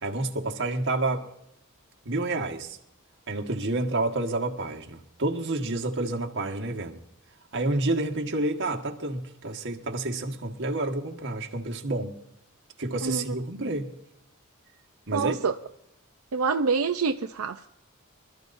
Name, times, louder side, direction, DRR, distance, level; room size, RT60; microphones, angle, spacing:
voice 1, 0.0-1.3 2.0-2.8 3.3-7.0 7.5-12.1 12.8-13.9 15.1-15.4, right 2 dB, 60° right, 1.5 m, -29 dB
voice 2, 13.0-13.3 15.1-15.5 16.3-17.7, right 5 dB, 80° right, 0.6 m, -26 dB
25.5 x 13.5 x 2.6 m
head